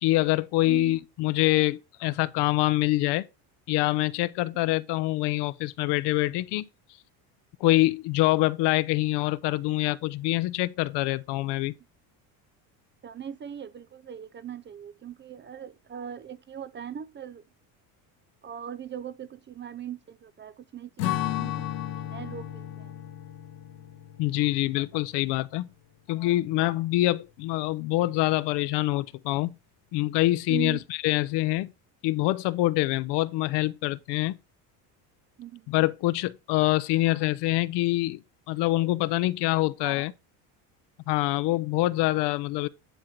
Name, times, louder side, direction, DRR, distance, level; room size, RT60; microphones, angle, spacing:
voice 1, 0.0-3.3 3.7-6.7 7.6-11.7 24.2-25.7 26.1-29.5 29.9-31.7 32.0-34.4 35.7-38.2 38.5-40.1 41.1-42.7, left 18 dB, 65° left, 0.7 m, -25 dB
voice 2, 0.7-1.0 13.0-17.4 18.4-22.9 30.5-30.8 35.4-35.7 39.8-40.0, right 9 dB, 25° right, 0.4 m, -40 dB
Strum, 21.0-25.6, left 12 dB, 80° left, 1.5 m, -34 dB
10.5 x 3.8 x 4.4 m
supercardioid pair, 95°, 45 cm